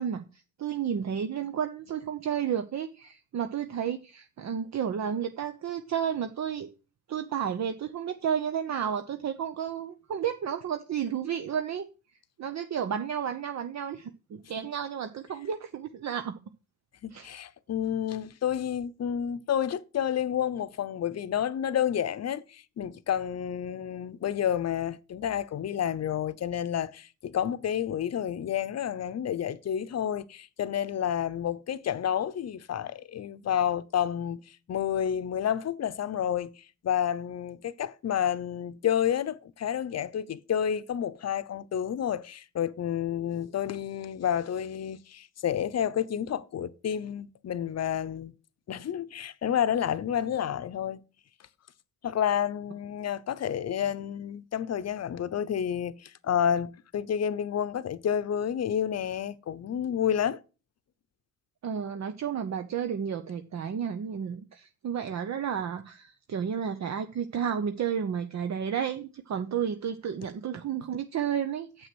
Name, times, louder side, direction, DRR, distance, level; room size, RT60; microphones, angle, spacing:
voice 1, 0.0-6.7 7.1-11.9 12.4-16.4 17.1-17.4 61.6-71.9, right 8 dB, 55° right, 0.8 m, -32 dB
voice 2, 17.0-34.4 34.7-48.3 48.7-51.0 52.0-60.4, left 9 dB, 50° left, 0.7 m, -30 dB
7.6 x 6.2 x 6.1 m
supercardioid pair, 60°, 32 cm